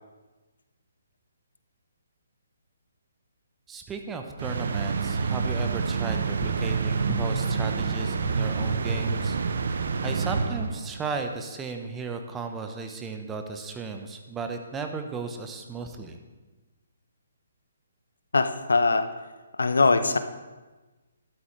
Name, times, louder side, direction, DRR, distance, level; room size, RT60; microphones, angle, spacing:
voice 1, 3.7-9.4 10.0-16.2, right 4 dB, 15° right, 5 dB, 1.0 m, -35 dB
sound 1, 4.4-11.1, right 5 dB, 60° right, 0.8 m, -27 dB
voice 2, 18.3-19.1 19.6-20.2, left 3 dB, 75° left, 10 dB, 0.8 m, -21 dB
13.0 x 11.5 x 3.3 m, 1.2 s
figure-of-eight pair, 135°, 0 cm